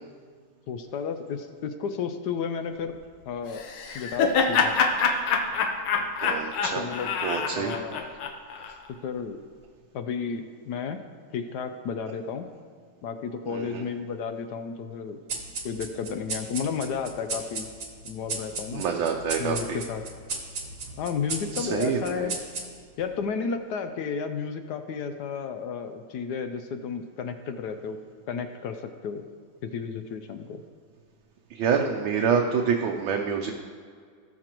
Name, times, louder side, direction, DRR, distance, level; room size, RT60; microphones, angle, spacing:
voice 1, 0.7-2.9 3.3-3.6 3.9-4.8 6.8-7.1 7.5-8.1 9.0-9.4 9.9-11.0 11.3-12.5 13.0-15.2 15.6-17.7 18.0-18.8 19.4-20.0 21.0-22.4 23.0-28.0 28.3-29.3 29.6-30.6, left 6 dB, 70° left, 8 dB, 1.0 m, -32 dB
Laughter, 3.5-8.7, left 5 dB, 90° left, 1.7 m, -25 dB
voice 2, 6.2-6.8 7.2-7.7 13.5-13.9 18.7-19.8 21.5-22.3 31.5-33.5, right 6 dB, 75° right, 2 dB, 1.4 m, -27 dB
sound 1, 15.3-23.0, right 3 dB, 45° right, 1.3 m, -36 dB
18.5 x 6.2 x 3.0 m, 2.1 s
omnidirectional pair, 2.2 m